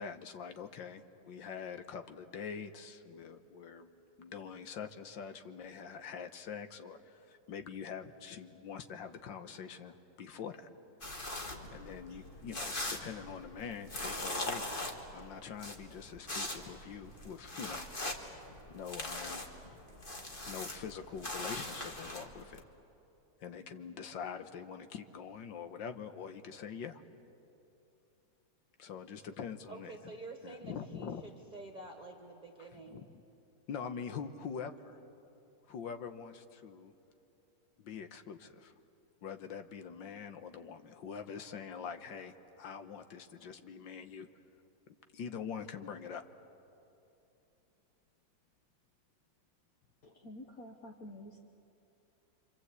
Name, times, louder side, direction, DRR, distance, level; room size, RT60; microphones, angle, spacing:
voice 1, 0.0-3.9 4.2-10.7 11.7-14.7 15.1-18.2 18.7-19.5 20.5-22.6 23.4-27.0 28.8-30.1 30.4-31.3 32.6-33.2 33.7-35.0 35.7-36.9 37.8-38.7 39.2-44.3 44.9-46.2, left 6 dB, 80° left, 8 dB, 1.8 m, -44 dB
sound 1, 11.0-22.6, left 2 dB, 30° left, 1.9 m, -41 dB
voice 2, 29.7-33.1, right 3 dB, 25° right, 3 dB, 1.5 m, -49 dB
voice 3, 50.0-51.4, left 1 dB, 55° left, 2 dB, 1.5 m, -49 dB
27.0 x 25.5 x 8.2 m, 2.8 s
omnidirectional pair, 2.0 m